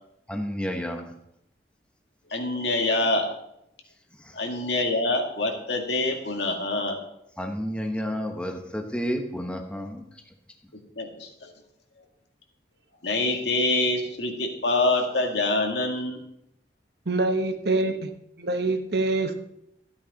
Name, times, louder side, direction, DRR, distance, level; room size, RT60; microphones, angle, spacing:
voice 1, 0.3-1.1 7.4-10.0, equal, 5° left, 4 dB, 1.1 m, -30 dB
voice 2, 2.3-3.3 4.3-7.0 11.0-11.5 13.0-16.2, left 2 dB, 80° left, 2 dB, 1.9 m, -25 dB
voice 3, 17.1-18.1 18.4-19.3, right 2 dB, 65° right, 7 dB, 1.1 m, -25 dB
13.5 x 8.8 x 4.1 m, 0.80 s
head